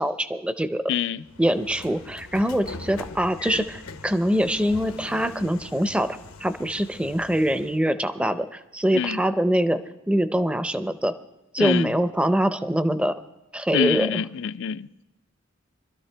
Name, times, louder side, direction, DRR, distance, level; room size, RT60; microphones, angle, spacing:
voice 1, 0.0-0.9 1.4-9.8 10.1-11.1 11.5-13.2 13.5-14.2, equal, 5° right, 0.5 m, -24 dB
voice 2, 0.9-1.2 8.9-9.2 11.6-11.9 13.7-15.0, left 8 dB, 60° left, 0.4 m, -26 dB
Train / Sliding door, 1.3-7.8, left 3 dB, 90° left, 1.0 m, -41 dB
25.0 x 13.0 x 3.3 m
head